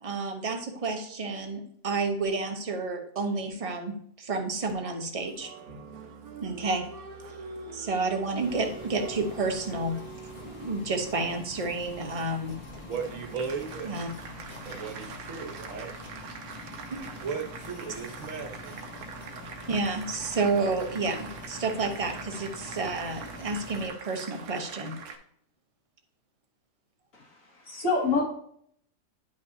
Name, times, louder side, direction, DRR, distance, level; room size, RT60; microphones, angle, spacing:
voice 1, 0.0-5.5 6.4-6.8 7.7-9.9 10.4-12.6 13.8-14.1 16.9-17.0 19.7-25.0, right 3 dB, 30° right, 4 dB, 0.8 m, -30 dB
Applause, 5.2-25.2, right 5 dB, 90° right, 1.3 m, -44 dB
sound 1, 8.4-23.9, left 2 dB, 85° left, 1.8 m, -45 dB
voice 2, 12.8-13.9 14.6-15.9 17.2-18.7, right 5 dB, 65° right, 4 dB, 1.4 m, -36 dB
voice 3, 27.1-28.2, left 3 dB, 65° left, -1 dB, 2.3 m, -27 dB
10.0 x 5.5 x 2.7 m, 0.66 s
omnidirectional pair, 1.5 m